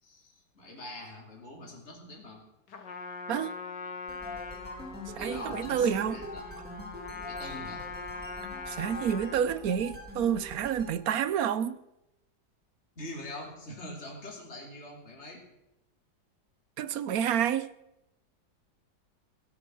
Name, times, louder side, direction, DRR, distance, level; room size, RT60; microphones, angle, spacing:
voice 1, 0.0-2.5 5.2-6.7 7.2-7.9 13.0-15.4, left 1 dB, 35° left, 3.6 m, -44 dB
Trumpet, 2.7-9.5, left 4 dB, 70° left, 2.2 m, -42 dB
sound 1, 4.1-10.9, left 1 dB, 5° right, 4.2 m, -43 dB
voice 2, 5.2-6.2 8.7-11.8 16.8-17.7, right 8 dB, 60° right, 1.1 m, -29 dB
17.0 x 12.5 x 6.2 m
omnidirectional pair, 1.9 m